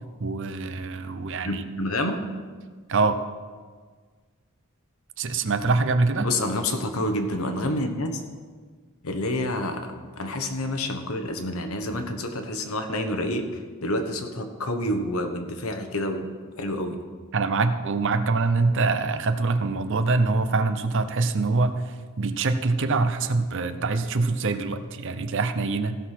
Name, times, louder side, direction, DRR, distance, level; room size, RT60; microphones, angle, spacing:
voice 1, 0.2-1.6 2.9-3.2 5.2-6.3 17.3-21.7 22.2-26.0, right 3 dB, 60° right, 10 dB, 0.7 m, -24 dB
voice 2, 1.4-2.2 6.2-8.2 9.0-16.3 16.6-17.0, left 1 dB, 80° left, 6 dB, 1.2 m, -28 dB
15.5 x 6.2 x 5.8 m, 1.5 s
head